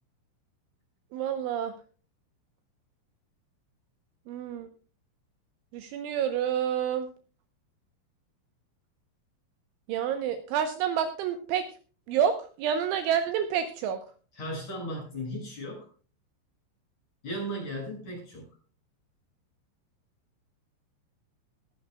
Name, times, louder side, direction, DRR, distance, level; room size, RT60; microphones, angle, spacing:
voice 1, 1.1-1.7 4.3-4.7 5.7-7.1 9.9-11.6 12.1-14.0, right 8 dB, 75° right, 8 dB, 3.2 m, -28 dB
voice 2, 14.4-15.9 17.2-18.5, equal, 35° left, -1 dB, 8.0 m, -36 dB
20.5 x 11.5 x 2.3 m, 0.38 s
omnidirectional pair, 6.0 m